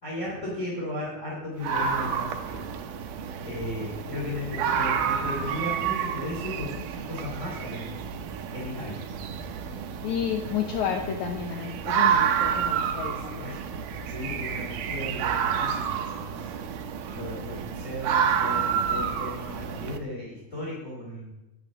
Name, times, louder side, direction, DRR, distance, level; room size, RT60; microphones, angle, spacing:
voice 1, 0.0-2.7 3.4-8.0 8.5-9.1 13.1-13.8 14.1-16.5 17.1-21.3, left 1 dB, 20° left, -6 dB, 2.8 m, -36 dB
sound 1, 1.6-20.0, right 7 dB, 90° right, 2.6 m, -29 dB
voice 2, 10.0-13.5, left 8 dB, 75° left, 3 dB, 1.8 m, -31 dB
10.5 x 6.7 x 6.1 m, 0.99 s
omnidirectional pair, 4.1 m